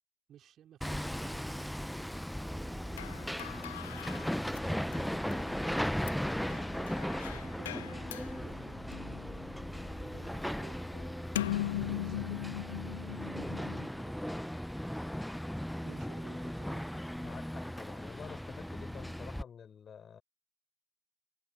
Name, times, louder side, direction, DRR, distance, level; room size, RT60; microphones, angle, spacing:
voice 1, 0.3-2.0 2.5-6.9 7.3-9.2 9.9-11.1 11.7-12.4 12.8-14.7 15.8-17.1, right 10 dB, 30° right, 4.0 m, -56 dB
Hammer, 0.8-19.4, equal, ahead, 1.1 m, -37 dB
sound 1, 2.9-13.9, left 13 dB, 55° left, 0.4 m, -41 dB
voice 2, 17.2-20.2, left 7 dB, 20° left, 5.4 m, -49 dB
figure-of-eight pair, 90°, 0 cm